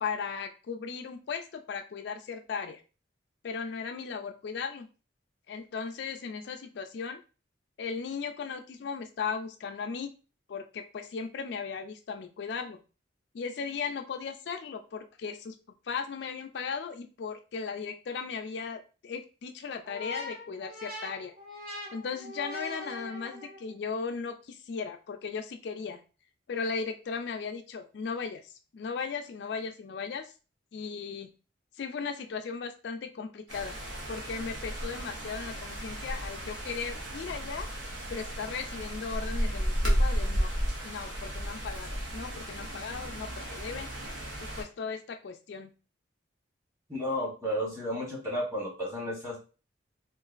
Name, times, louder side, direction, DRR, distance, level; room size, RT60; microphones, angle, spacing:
voice 1, 0.0-2.8 3.4-4.9 5.5-7.2 7.8-10.1 10.5-12.8 13.3-15.6 15.9-21.3 21.9-26.0 26.5-30.3 30.7-31.3 31.8-33.8 34.1-37.7 38.1-40.5 40.8-43.9 44.6-45.7, left 5 dB, 60° left, 5 dB, 0.3 m, -37 dB
sound 1, 19.8-23.7, left 1 dB, 45° right, 1.1 m, -42 dB
sound 2, 33.5-44.6, equal, 75° right, 1.2 m, -33 dB
voice 2, 46.9-49.4, equal, 15° right, -3 dB, 1.1 m, -32 dB
3.7 x 2.4 x 2.4 m, 0.34 s
head